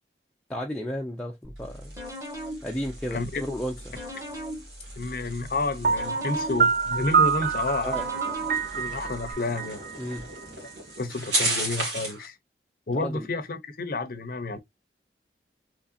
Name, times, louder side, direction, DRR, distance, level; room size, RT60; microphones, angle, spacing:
voice 1, 0.5-1.9 2.6-4.0 7.8-8.0 10.0-10.3 12.9-13.3, equal, 5° left, 0.4 m, -33 dB
sound 1, 1.4-9.3, equal, 20° right, 1.2 m, -40 dB
sound 2, 1.6-12.3, right 2 dB, 70° right, 2.0 m, -36 dB
voice 2, 3.1-3.4 5.0-8.0 8.8-9.8 11.0-12.4 12.9-14.6, left 3 dB, 55° left, 0.6 m, -30 dB
Piano, 5.8-10.7, right 5 dB, 50° right, 0.4 m, -26 dB
3.7 x 3.2 x 2.5 m
head